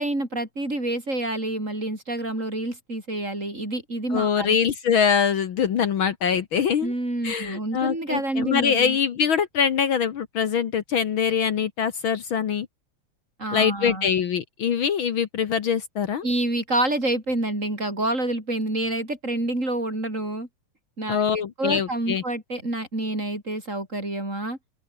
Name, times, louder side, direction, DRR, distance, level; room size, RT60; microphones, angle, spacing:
voice 1, 0.0-4.6 6.8-9.0 13.4-14.1 16.2-20.5 21.0-24.6, right 1 dB, 20° right, 6.8 m, -28 dB
voice 2, 4.1-6.9 7.2-12.7 13.5-16.3 21.1-22.2, left 7 dB, 55° left, 1.5 m, -23 dB
open air
omnidirectional pair, 3.5 m